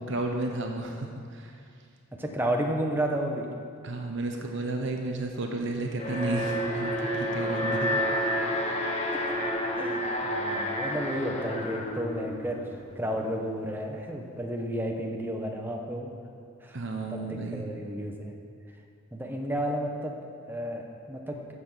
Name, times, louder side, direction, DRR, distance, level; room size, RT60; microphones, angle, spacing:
voice 1, 0.1-1.5 3.8-8.3 16.7-17.7, right 2 dB, 60° right, 2 dB, 1.0 m, -32 dB
voice 2, 2.2-3.5 9.8-12.6 13.0-16.1 16.6-16.8 17.1-18.3 19.1-20.1 20.5-21.4, equal, 10° right, 1 dB, 1.0 m, -32 dB
Alarm, 6.0-13.1, equal, 30° left, 1.2 m, -30 dB
14.5 x 7.1 x 5.8 m, 2.3 s
head